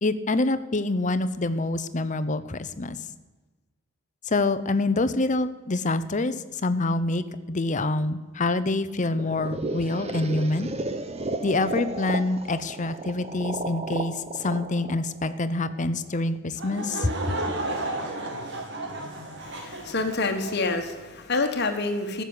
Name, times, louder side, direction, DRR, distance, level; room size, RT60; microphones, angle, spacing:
voice 1, 0.0-3.0 4.3-6.3 6.6-10.7 11.4-17.3, left 2 dB, 40° left, 11 dB, 0.8 m, -26 dB
sound 1, 9.2-16.1, right 2 dB, 30° right, 0.9 m, -34 dB
Laughter / Crowd, 16.6-20.8, right 2 dB, 60° right, 2.2 m, -33 dB
voice 2, 19.4-22.2, left 3 dB, 55° left, 6 dB, 1.5 m, -27 dB
14.5 x 6.8 x 9.5 m, 1.2 s
head